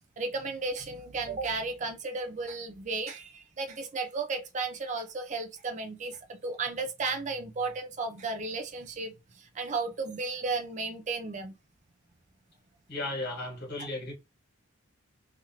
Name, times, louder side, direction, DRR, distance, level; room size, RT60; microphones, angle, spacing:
voice 1, 0.2-11.5 13.8-13.9, right 3 dB, 35° right, 0.4 m, -34 dB
voice 2, 12.9-14.1, left 2 dB, 45° left, 1.5 m, -35 dB
3.0 x 2.5 x 2.8 m
head